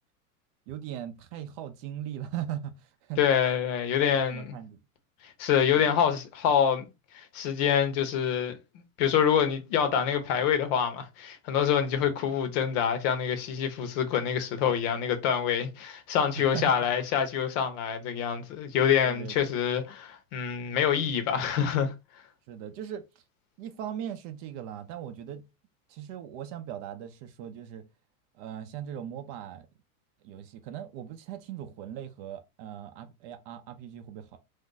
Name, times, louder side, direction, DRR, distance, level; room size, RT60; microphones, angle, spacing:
voice 1, 0.7-3.2 4.0-4.8 5.7-6.0 16.4-16.7 19.0-19.5 22.5-23.0 23.6-25.4 25.9-27.8 28.4-29.7 30.2-34.4, right 10 dB, 45° right, 0.5 m, -39 dB
voice 2, 3.2-4.5 5.2-6.9 7.1-8.6 9.0-21.9, left 8 dB, 55° left, 0.9 m, -26 dB
2.6 x 2.3 x 3.7 m
supercardioid pair, 125°, 44 cm